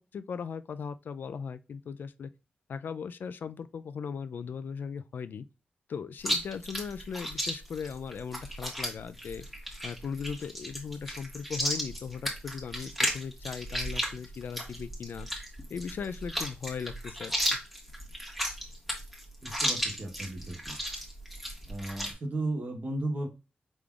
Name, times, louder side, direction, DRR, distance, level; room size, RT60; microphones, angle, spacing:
voice 1, 0.1-2.3 2.7-5.5 5.9-9.4 9.8-15.3 15.7-17.3, left 6 dB, 75° left, 0.3 m, -38 dB
Chewing mastication, 6.2-22.1, equal, ahead, 1.5 m, -34 dB
voice 2, 19.4-20.8 21.7-23.3, right 2 dB, 60° right, 1.1 m, -35 dB
5.0 x 3.6 x 2.4 m
wide cardioid pair, 85°, 3 cm